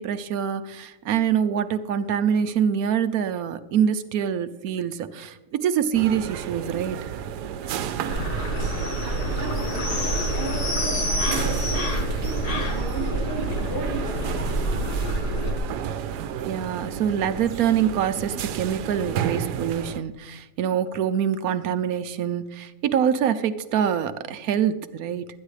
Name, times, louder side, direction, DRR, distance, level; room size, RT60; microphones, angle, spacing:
voice 1, 0.0-7.0 16.4-25.3, right 8 dB, 70° right, 11 dB, 1.1 m, -25 dB
sound 1, 5.9-20.0, right 9 dB, 85° right, 1.3 m, -32 dB
sound 2, 8.1-15.5, equal, 70° left, 2.5 m, -27 dB
voice 2, 8.7-15.3, right 3 dB, 50° right, -4 dB, 5.8 m, -36 dB
21.5 x 9.7 x 3.2 m, 1.1 s
omnidirectional pair, 1.7 m